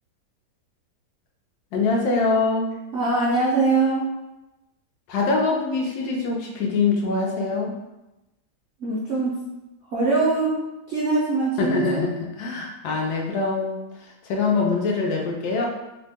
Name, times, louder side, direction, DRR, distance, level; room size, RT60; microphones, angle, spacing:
voice 1, 1.7-2.7 5.1-7.7 11.6-13.8 14.2-15.7, left 4 dB, 75° left, -1 dB, 1.1 m, -23 dB
voice 2, 2.9-4.1 8.8-9.4 9.9-10.5 10.9-12.0, right 3 dB, 75° right, -5 dB, 0.6 m, -22 dB
2.9 x 2.1 x 3.3 m, 1.0 s
omnidirectional pair, 1.8 m